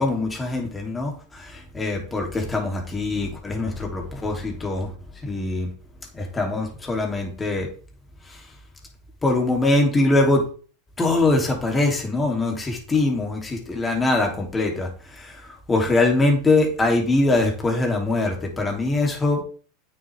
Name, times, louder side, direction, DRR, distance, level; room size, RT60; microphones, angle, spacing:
voice 1, 0.0-4.9 5.2-5.7 6.1-7.7 8.3-8.4 9.2-10.4 11.0-19.4, left 2 dB, 15° left, 1 dB, 3.1 m, -23 dB
8.9 x 7.3 x 3.5 m, 0.40 s
supercardioid pair, 115°, 0 cm